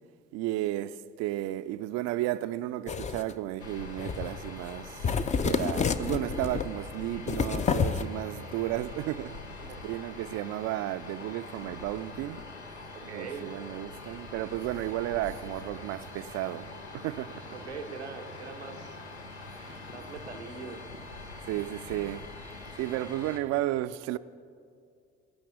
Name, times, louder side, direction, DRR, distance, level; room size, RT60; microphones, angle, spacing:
voice 1, 0.3-5.1 5.4-9.4 9.8-12.4 13.0-17.6 19.5-19.8 21.4-22.3 22.8-24.2, right 15 dB, 50° right, 0.4 m, -33 dB
sound 1, 2.9-3.3 4.0-4.4 4.7-4.8 5.0-6.7 7.3-8.0, left 6 dB, 20° left, 0.5 m, -29 dB
sound 2, 3.6-23.4, left 3 dB, 85° left, 0.7 m, -44 dB
voice 2, 9.6-9.9 12.9-13.5 17.5-19.0 19.9-20.8, right 5 dB, 85° right, 0.7 m, -42 dB
14.0 x 6.0 x 8.1 m
figure-of-eight pair, 45°, 33 cm